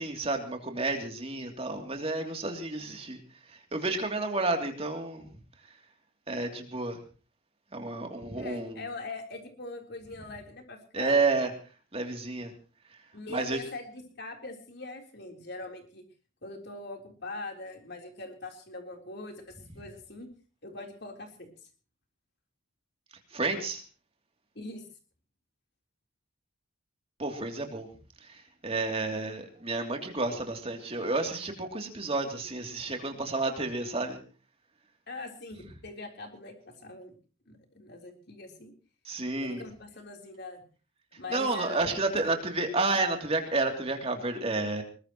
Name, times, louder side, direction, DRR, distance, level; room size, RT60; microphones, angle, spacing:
voice 1, 0.0-3.2 3.5-5.3 5.7-5.8 6.3-7.0 7.7-8.8 10.9-11.5 11.9-12.5 13.3-13.6 23.3-23.8 27.2-27.9 28.2-34.2 39.0-39.6 41.1-44.8, right 3 dB, 30° right, 3 dB, 2.9 m, -31 dB
voice 2, 8.4-11.3 13.1-16.0 16.4-20.3 20.6-21.5 24.6-24.8 35.1-37.2 37.5-38.7 39.4-40.6 41.2-42.2, left 2 dB, 55° left, 3 dB, 3.8 m, -42 dB
21.5 x 20.0 x 3.1 m, 0.38 s
head